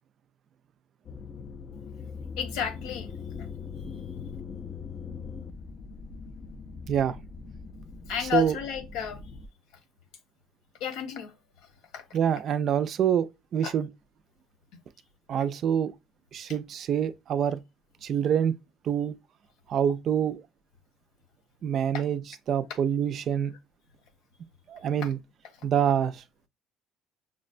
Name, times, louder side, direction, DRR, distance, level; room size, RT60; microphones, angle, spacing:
sound 1, 1.0-9.5, left 5 dB, 30° left, 0.3 m, -41 dB
voice 1, 2.4-3.1 3.8-3.9 8.1-9.2 10.8-11.3 11.9-12.2 13.6-13.7 21.9-22.0 25.0-25.1, left 9 dB, 85° left, 1.1 m, -32 dB
voice 2, 12.1-13.9 15.3-15.9 16.3-17.6 18.0-18.5 18.8-19.1 19.7-20.4 21.6-22.2 22.5-23.5 24.7-25.2 25.6-26.2, right 8 dB, 45° right, 0.4 m, -26 dB
6.0 x 2.1 x 2.4 m
cardioid pair, 155°, 0 cm